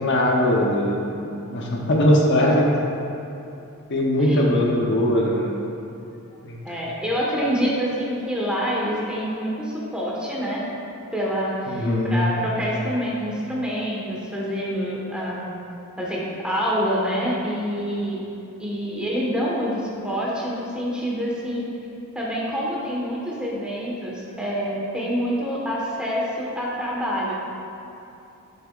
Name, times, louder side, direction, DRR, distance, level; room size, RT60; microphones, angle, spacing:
voice 1, 0.0-2.7 3.9-5.5 6.4-6.6 11.7-12.3, left 1 dB, 55° left, -2 dB, 0.9 m, -20 dB
voice 2, 6.6-10.6 11.1-15.4 16.0-18.2 18.6-21.6 22.1-27.3, equal, 5° right, -5 dB, 1.4 m, -26 dB
10.5 x 7.5 x 2.5 m, 2.8 s
head